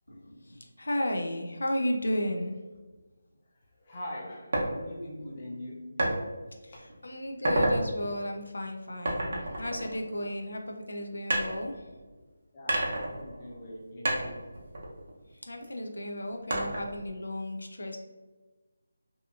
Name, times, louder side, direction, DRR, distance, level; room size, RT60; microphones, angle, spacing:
voice 1, 0.1-2.6 6.6-11.8 15.3-18.0, left 1 dB, 85° left, 3 dB, 0.4 m, -34 dB
voice 2, 3.8-6.0 6.7-6.9 12.5-14.4, left 1 dB, 20° left, -4 dB, 0.5 m, -42 dB
sound 1, 4.5-4.7 6.0-6.2 6.7-6.9 7.3-7.8 9.0-10.5 11.3-12.2 12.7-13.8 14.0-15.6 16.5-17.1, right 1 dB, 40° right, 0.5 m, -30 dB
2.7 x 2.4 x 2.4 m, 1.2 s
figure-of-eight pair, 175°, 0 cm